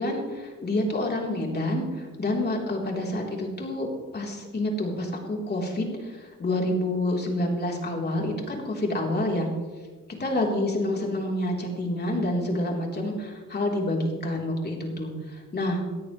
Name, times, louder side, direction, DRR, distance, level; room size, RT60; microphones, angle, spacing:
voice 1, 0.0-9.5 10.2-15.8, left 1 dB, 35° left, -1 dB, 3.8 m, -28 dB
19.0 x 13.5 x 3.3 m, 1.4 s
cardioid pair, 90°, 30 cm